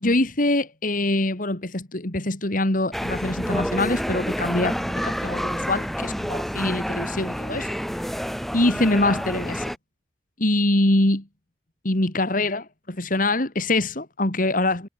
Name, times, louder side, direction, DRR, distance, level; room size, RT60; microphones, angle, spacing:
voice 1, 0.0-7.7 8.5-9.7 10.4-11.2 11.8-14.9, left 2 dB, 50° left, 2.5 m, -24 dB
sound 1, 2.9-9.8, equal, ahead, 3.4 m, -28 dB
head